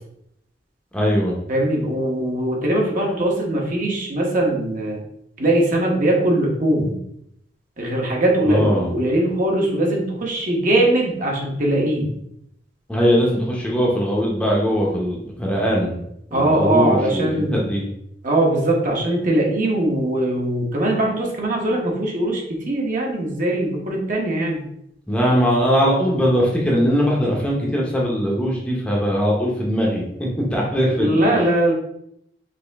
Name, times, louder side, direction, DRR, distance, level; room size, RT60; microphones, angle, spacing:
voice 1, 0.9-1.4 8.5-8.9 12.9-16.0 16.3-17.8 25.1-31.3, equal, 5° left, -3 dB, 0.8 m, -20 dB
voice 2, 1.5-5.0 5.4-6.9 7.8-12.1 16.3-17.7 18.2-24.6 30.8-31.7, right 1 dB, 45° right, -2 dB, 1.1 m, -21 dB
5.2 x 2.8 x 3.4 m, 0.76 s
head